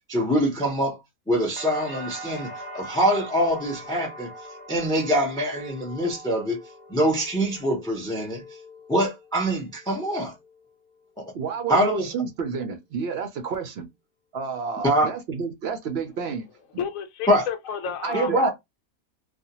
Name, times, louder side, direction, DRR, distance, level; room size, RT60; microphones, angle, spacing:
voice 1, 0.1-1.0 1.3-4.3 4.7-6.6 6.9-8.4 8.9-10.3 11.7-12.1 14.8-15.1 17.3-17.4 18.1-18.5, equal, 5° left, 0.4 m, -24 dB
sound 1, 1.6-9.5 9.8-10.5, equal, 45° left, 0.7 m, -42 dB
voice 2, 11.3-13.9 14.3-16.4 18.0-18.5, right 6 dB, 65° right, 0.6 m, -30 dB
voice 3, 16.8-18.5, left 7 dB, 75° left, 1.0 m, -31 dB
2.5 x 2.2 x 2.8 m
omnidirectional pair, 1.5 m